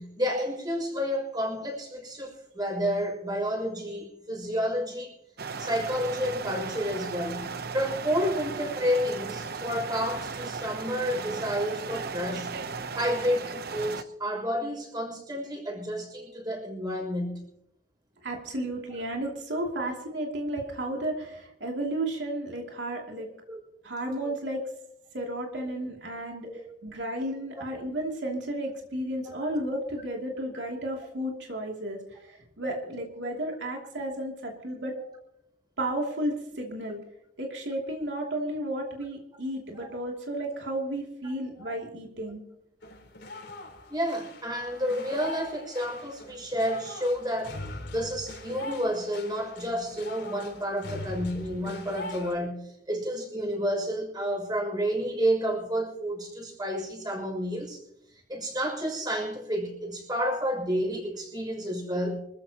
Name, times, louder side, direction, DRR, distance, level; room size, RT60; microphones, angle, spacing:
voice 1, 0.0-5.1 5.6-12.5 13.0-17.4 23.5-23.6 26.4-26.6 29.2-29.4 39.8-39.9 41.6-41.7 43.9-47.6 47.9-57.8 58.3-62.2, equal, 25° right, 1 dB, 6.2 m, -30 dB
sound 1, 5.4-14.0, right 5 dB, 60° right, 0.8 m, -36 dB
voice 2, 18.2-23.3 23.8-24.6 25.1-35.0 35.8-37.0 37.4-42.4, right 1 dB, 90° right, 0 dB, 2.8 m, -33 dB
sound 2, 42.8-52.3, left 2 dB, 90° left, 3.9 m, -42 dB
26.0 x 14.5 x 2.9 m, 0.78 s
head